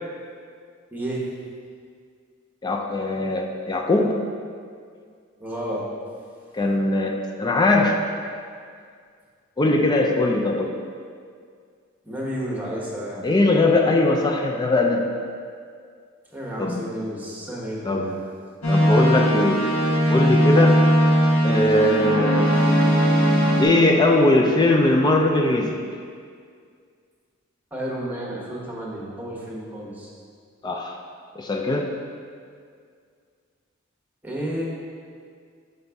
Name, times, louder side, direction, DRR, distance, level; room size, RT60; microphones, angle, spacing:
voice 1, 0.9-1.2 5.4-5.8 12.0-13.3 16.3-18.2 27.7-30.1 34.2-34.8, equal, 10° right, -5 dB, 1.0 m, -31 dB
voice 2, 2.6-4.2 6.5-8.0 9.6-10.7 13.2-15.1 16.6-16.8 17.9-18.0 18.7-19.7 20.1-20.8 21.4-22.5 23.6-25.8 30.6-31.0 31.4-31.9, left 2 dB, 20° left, 2 dB, 0.3 m, -20 dB
sound 1, 18.6-23.7, equal, 70° left, 1.1 m, -19 dB
5.5 x 5.2 x 3.4 m, 2.2 s
head